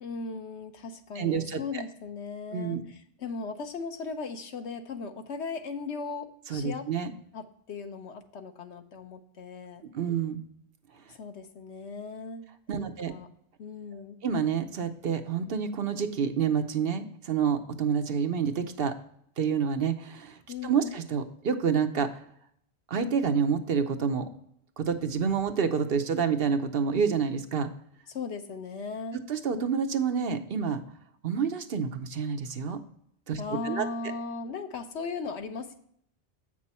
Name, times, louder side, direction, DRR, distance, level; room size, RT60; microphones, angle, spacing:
voice 1, 0.0-6.9 7.3-9.8 11.1-12.5 12.8-13.3 13.6-14.2 20.5-20.9 28.1-29.2 33.4-35.7, left 4 dB, 80° left, 7 dB, 1.2 m, -37 dB
voice 2, 1.2-1.8 2.5-2.8 6.5-7.1 9.9-10.4 12.7-13.1 13.9-18.9 19.4-22.1 22.9-24.3 24.8-27.7 29.3-30.8 31.2-32.8 33.3-33.9, right 6 dB, 60° right, 8 dB, 0.9 m, -28 dB
8.1 x 6.1 x 4.2 m, 0.69 s
omnidirectional pair, 1.1 m